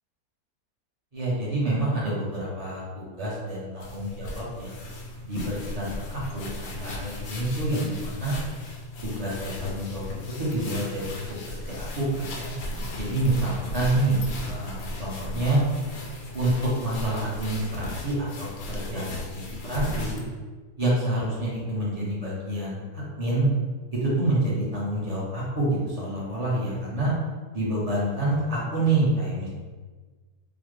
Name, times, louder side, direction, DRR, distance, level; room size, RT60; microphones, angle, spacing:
voice 1, 1.1-4.8 5.3-8.4 9.0-10.0 10.4-11.2 11.7-12.5 13.0-15.6 16.3-20.2 20.8-23.5 23.9-27.1 27.5-29.5, right 1 dB, 35° right, -7 dB, 0.6 m, -27 dB
sound 1, 3.8-20.3, left 1 dB, 75° left, 0.6 m, -36 dB
3.9 x 2.1 x 3.1 m, 1.4 s
omnidirectional pair, 1.7 m